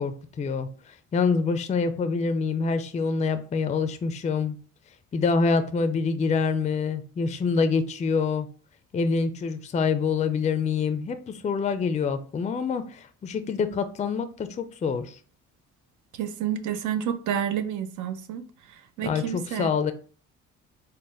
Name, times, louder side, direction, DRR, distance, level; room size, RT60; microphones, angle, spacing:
voice 1, 0.0-4.6 5.1-8.5 8.9-15.2 19.0-19.9, left 5 dB, 25° left, 0.4 m, -26 dB
voice 2, 16.1-18.4 18.7-19.7, right 9 dB, 80° right, 0.5 m, -30 dB
4.0 x 2.1 x 3.7 m
cardioid pair, 90°, 30 cm